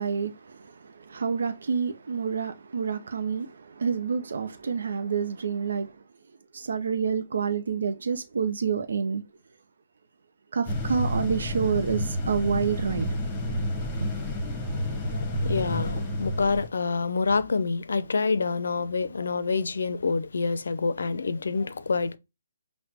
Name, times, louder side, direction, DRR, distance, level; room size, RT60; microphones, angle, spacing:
voice 1, 0.0-6.0 6.5-9.2 10.5-13.1, right 6 dB, 70° right, 0.6 m, -28 dB
sound 1, 10.7-16.7, left 1 dB, 20° left, 1.1 m, -30 dB
voice 2, 15.0-22.2, left 4 dB, 70° left, 0.5 m, -27 dB
5.7 x 2.2 x 2.8 m
hypercardioid pair, 145°, 0 cm